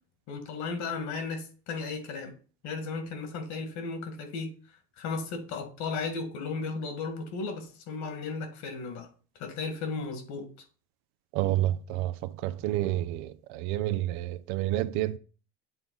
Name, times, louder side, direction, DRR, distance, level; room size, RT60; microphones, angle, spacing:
voice 1, 0.3-2.3 2.6-4.5 5.0-9.1 9.4-10.5, left 4 dB, 60° left, 1.8 m, -35 dB
voice 2, 11.3-12.1 12.4-15.2, right 14 dB, 65° right, 0.6 m, -29 dB
8.0 x 3.6 x 3.9 m
supercardioid pair, 105°, 31 cm